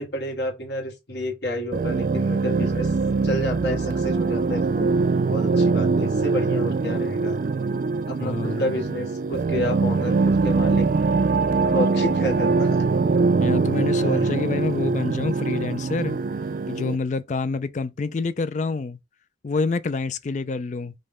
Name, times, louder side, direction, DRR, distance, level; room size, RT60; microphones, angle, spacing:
voice 1, 0.0-2.9 3.2-4.9 5.3-7.4 8.1-10.9 11.6-12.8 14.0-14.3, left 1 dB, 75° left, 1.6 m, -30 dB
sound 1, 1.7-17.0, right 4 dB, 50° right, 0.3 m, -23 dB
voice 2, 8.2-8.7 13.4-16.2 16.7-19.0 19.4-20.9, left 4 dB, 40° left, 0.4 m, -27 dB
5.2 x 2.2 x 3.6 m
head